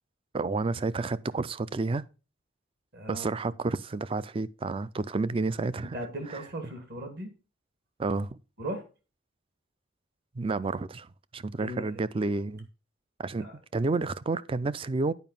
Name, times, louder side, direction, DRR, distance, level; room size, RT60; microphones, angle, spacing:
voice 1, 0.3-2.0 3.1-5.9 8.0-8.4 10.4-12.7 13.2-13.5 13.7-15.1, right 3 dB, 25° right, 0.3 m, -30 dB
voice 2, 2.9-3.3 5.9-7.3 8.6-8.8 11.6-12.0 13.4-13.5, right 1 dB, 55° right, 2.1 m, -37 dB
9.3 x 5.0 x 5.4 m
head